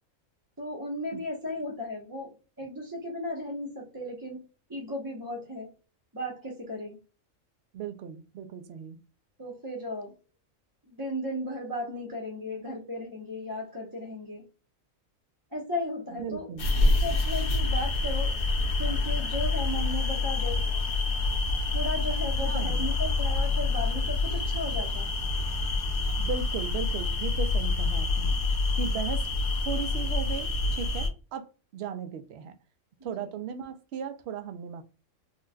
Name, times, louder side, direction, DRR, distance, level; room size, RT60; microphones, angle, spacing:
voice 1, 0.6-4.4 4.7-5.7 6.1-7.0 9.4-10.1 10.9-14.4 15.5-16.5 17.0-18.4 18.8-20.6 21.7-25.1, left 1 dB, 20° right, 0.8 m, -35 dB
voice 2, 7.7-9.0 12.6-12.7 16.1-16.7 22.4-22.9 26.2-28.4 28.8-29.3 29.6-31.5 31.7-32.5 33.0-34.8, right 7 dB, 65° right, 0.7 m, -36 dB
sound 1, 16.6-31.1, left 3 dB, 50° left, 0.8 m, -27 dB
3.8 x 2.3 x 2.2 m
omnidirectional pair, 1.4 m